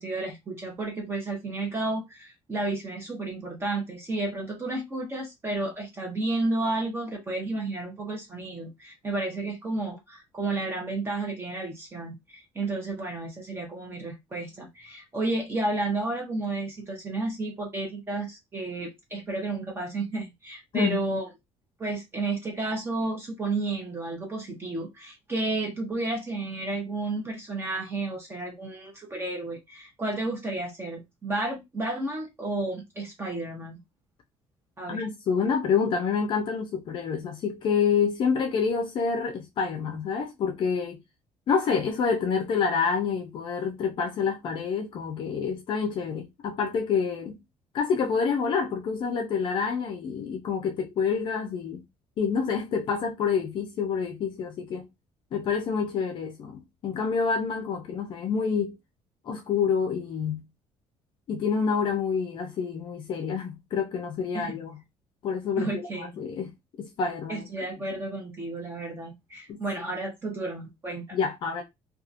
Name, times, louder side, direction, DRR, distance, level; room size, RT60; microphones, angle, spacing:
voice 1, 0.0-21.3 21.8-33.8 34.8-35.0 64.3-64.5 65.6-66.2 67.3-71.2, right 2 dB, 20° right, 0.8 m, -32 dB
voice 2, 34.9-41.0 41.5-47.4 47.7-51.8 52.2-54.9 55.3-58.8 59.3-60.5 61.3-64.8 65.2-66.5 66.8-67.5 69.5-69.6 71.1-71.6, left 6 dB, 45° left, 0.5 m, -27 dB
2.8 x 2.3 x 2.5 m
cardioid pair, 160°, 12 cm